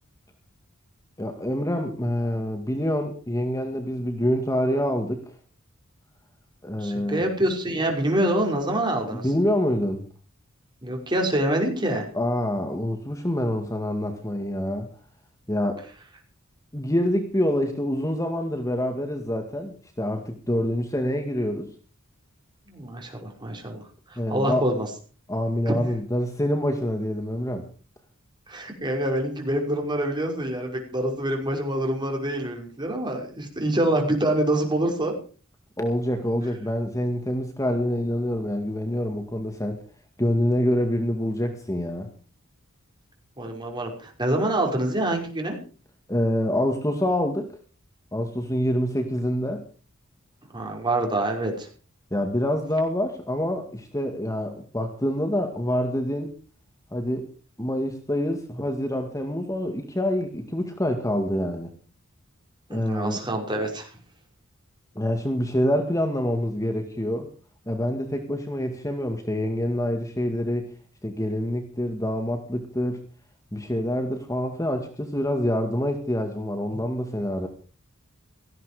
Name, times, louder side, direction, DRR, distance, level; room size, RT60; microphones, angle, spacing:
voice 1, 1.2-5.2 6.6-7.3 9.1-10.0 12.1-14.9 15.5-15.8 16.7-21.7 24.2-24.7 25.3-27.7 35.8-39.8 40.2-42.1 46.1-47.5 48.1-49.6 52.1-56.3 56.9-57.3 57.6-61.7 62.7-63.2 65.0-67.3 67.7-70.7 71.0-73.0 73.5-77.5, left 1 dB, 15° left, 5 dB, 2.0 m, -26 dB
voice 2, 6.8-9.3 10.8-12.1 22.7-23.8 24.1-24.9 25.7-25.8 28.5-35.1 43.4-45.6 50.5-51.7 62.7-63.9, right 1 dB, 20° right, 2 dB, 5.6 m, -26 dB
18.0 x 15.0 x 5.0 m, 0.40 s
head